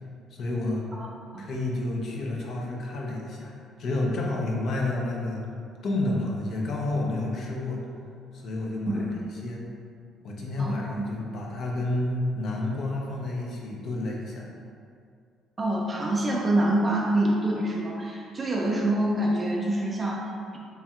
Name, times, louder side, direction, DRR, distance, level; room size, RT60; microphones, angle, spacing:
voice 1, 0.3-0.8 1.4-5.4 5.8-7.8 8.3-9.0 9.4-9.6 10.2-14.5, left 2 dB, 45° left, -2 dB, 0.6 m, -30 dB
voice 2, 10.6-11.1 15.6-20.6, right 1 dB, 15° right, -2 dB, 0.3 m, -26 dB
4.2 x 3.3 x 2.3 m, 2.3 s
cardioid pair, 180°, 0 cm